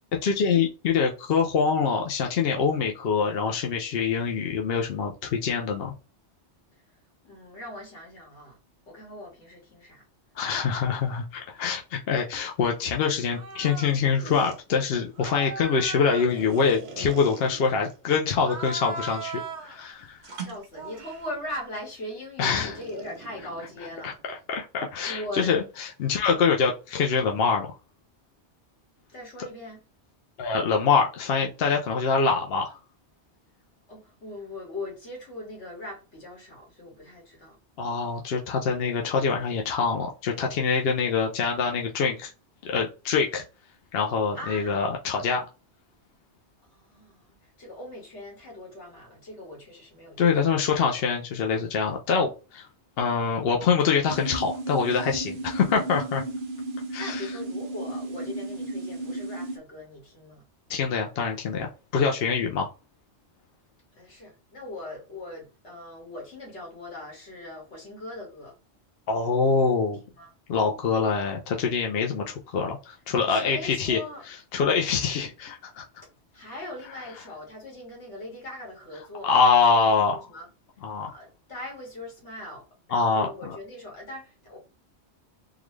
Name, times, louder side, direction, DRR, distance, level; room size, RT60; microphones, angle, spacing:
voice 1, 0.2-5.9 10.4-20.2 22.4-22.7 24.0-24.1 24.5-27.7 30.4-32.8 37.8-42.3 42.6-43.4 43.9-45.4 50.2-52.7 53.0-56.2 56.9-57.3 60.7-62.7 69.1-70.0 70.5-74.0 74.3-75.9 79.2-80.2 80.8-81.1 82.9-83.6, left 5 dB, 65° left, 0.8 m, -25 dB
voice 2, 7.2-8.6 8.9-10.1 10.9-11.0 20.4-24.2 25.0-25.5 26.3-26.5 29.1-29.8 33.9-37.6 44.3-44.7 46.7-50.7 57.0-60.4 63.9-68.5 70.2-70.3 73.2-74.2 76.3-79.4 79.7-80.5 81.1-84.6, left 1 dB, 80° left, 2.0 m, -40 dB
sound 1, 13.3-13.9 14.2-14.6 15.2-18.0 18.4-19.8 20.2-21.3 22.4-24.2, right 4 dB, 85° right, 1.2 m, -38 dB
sound 2, 54.1-59.6, right 2 dB, 55° right, 0.8 m, -34 dB
3.8 x 2.3 x 3.1 m
omnidirectional pair, 1.1 m